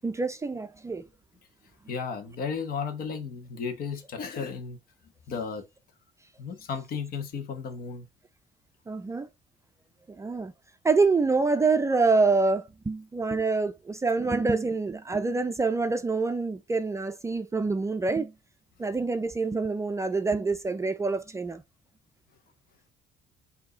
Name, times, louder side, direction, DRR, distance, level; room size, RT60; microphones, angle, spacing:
voice 1, 0.0-1.0 8.9-9.3 10.2-10.5 10.8-18.3 18.8-21.6, right 3 dB, 15° right, 0.4 m, -26 dB
voice 2, 1.9-4.8 5.3-5.6 6.4-8.1, left 5 dB, 60° left, 1.2 m, -34 dB
4.6 x 2.8 x 3.9 m
cardioid pair, 110°, 17 cm